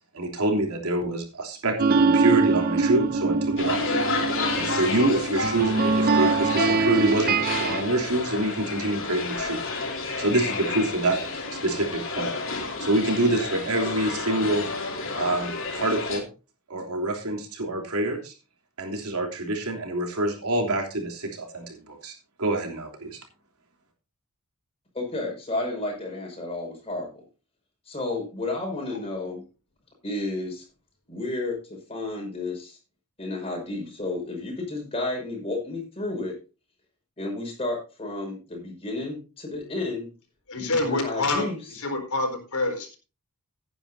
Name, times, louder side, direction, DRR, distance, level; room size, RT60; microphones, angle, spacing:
voice 1, 0.1-3.8 4.5-7.4 7.6-9.6 10.2-11.2 11.5-12.3 12.8-14.7 15.1-16.3 16.7-18.3 18.8-22.1 22.4-23.2, right 2 dB, 85° right, 2 dB, 3.3 m, -26 dB
sound 1, 1.8-7.8, right 4 dB, 40° right, 0.5 m, -23 dB
sound 2, 3.6-16.2, left 3 dB, 60° left, 3.5 m, -30 dB
voice 2, 24.9-27.1 27.9-29.4 30.0-30.6 31.1-32.8 33.2-36.3 37.2-40.1 40.6-41.6, left 2 dB, 25° left, 1 dB, 5.8 m, -32 dB
voice 3, 40.5-43.0, left 2 dB, 75° left, 4 dB, 4.1 m, -27 dB
16.5 x 9.9 x 2.7 m, 0.32 s
head